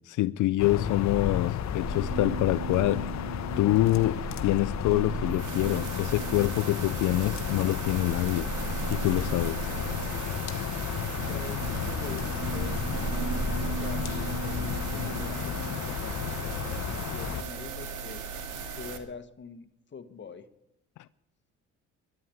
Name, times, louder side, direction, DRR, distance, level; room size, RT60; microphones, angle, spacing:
voice 1, 0.0-3.1 3.6-8.5 8.9-9.7, left 16 dB, 80° left, 0.5 m, -26 dB
sound 1, 0.6-17.4, left 8 dB, 65° left, 1.0 m, -33 dB
sound 2, 1.8-10.6 11.1-15.8, right 5 dB, 55° right, 2.2 m, -37 dB
sound 3, 5.3-19.0, right 5 dB, 90° right, 2.0 m, -38 dB
voice 2, 11.3-18.2 18.7-20.5, left 5 dB, 40° left, 1.4 m, -44 dB
12.5 x 10.5 x 9.1 m
cardioid pair, 90°, 30 cm